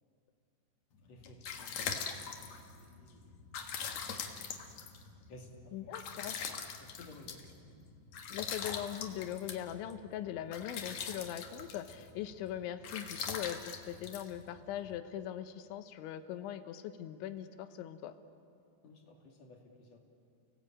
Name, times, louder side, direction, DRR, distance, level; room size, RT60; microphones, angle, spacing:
sound 1, 1.0-15.0, left 6 dB, 60° left, 2.0 m, -43 dB
voice 1, 1.0-3.3 3.7-4.0 4.3-4.4 5.3-6.3 6.8-7.6 18.8-20.0, left 2 dB, 45° left, 1 dB, 3.0 m, -56 dB
voice 2, 5.7-6.4 8.3-18.2, left 11 dB, 85° left, 10 dB, 3.3 m, -41 dB
30.0 x 19.0 x 8.7 m, 2.4 s
omnidirectional pair, 5.3 m